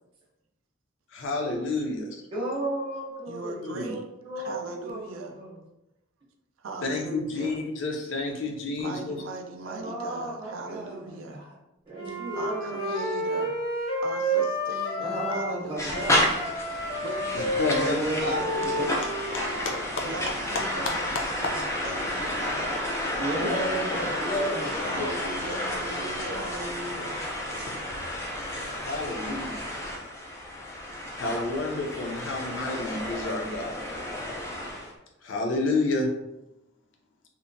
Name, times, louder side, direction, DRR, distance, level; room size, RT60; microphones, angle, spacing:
voice 1, 1.1-2.1 3.6-3.9 6.8-9.2 17.6-18.4 19.5-19.7 20.5-20.6 23.3-23.6 23.9-25.0 26.3-26.4 28.7-29.6 31.2-33.8 35.2-36.1, left 2 dB, 65° left, 1 dB, 0.5 m, -30 dB
voice 2, 2.3-5.6 9.6-11.5 11.8-13.0 15.0-16.3 17.8-18.3 18.6-18.9 23.1-24.7, right 1 dB, 25° right, -5 dB, 0.7 m, -34 dB
voice 3, 3.3-4.0 4.4-5.3 6.6-7.6 8.8-11.4 12.3-13.6 14.0-16.2 17.0-17.9 18.2-19.1 20.0-24.1 24.8-27.2, right 2 dB, 75° right, 4 dB, 0.4 m, -39 dB
Wind instrument woodwind instrument, 11.9-15.6 15.9-19.8, equal, 85° left, 1.4 m, -30 dB
sound 1, 15.8-34.9, left 1 dB, 15° left, 0.3 m, -31 dB
2.8 x 2.1 x 2.5 m, 0.90 s
head